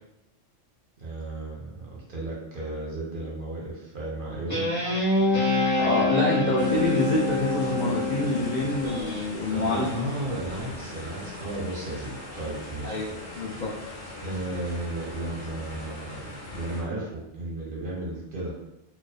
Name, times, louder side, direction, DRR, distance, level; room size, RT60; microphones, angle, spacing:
voice 1, 1.0-5.0 9.5-13.0 13.5-13.7 14.2-18.6, right 2 dB, 55° right, -4 dB, 0.7 m, -34 dB
Guitar, 4.5-9.2, left 2 dB, 15° left, 0.7 m, -26 dB
voice 2, 5.8-10.0 10.3-10.4 12.8-13.1 13.3-13.7, left 2 dB, 80° left, -5 dB, 0.4 m, -26 dB
sound 1, 6.6-16.8, left 1 dB, 50° left, 0.8 m, -40 dB
2.4 x 2.2 x 2.3 m, 0.88 s
omnidirectional pair, 1.3 m